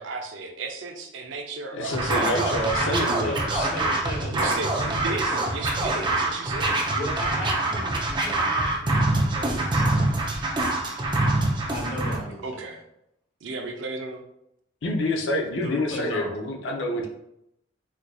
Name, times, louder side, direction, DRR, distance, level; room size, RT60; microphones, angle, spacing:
voice 1, 0.0-2.6 4.3-6.8 12.4-12.8 13.4-14.2, right 3 dB, 85° right, 4 dB, 0.5 m, -34 dB
voice 2, 1.7-3.7 14.8-17.1, left 1 dB, 80° left, 0 dB, 0.6 m, -27 dB
Scratching (performance technique), 1.9-12.2, right 2 dB, 25° right, 0.5 m, -25 dB
voice 3, 2.7-5.4 6.9-10.3 11.7-12.4 15.6-16.3, left 1 dB, 60° left, -3 dB, 1.2 m, -35 dB
4.4 x 2.5 x 2.3 m, 0.80 s
head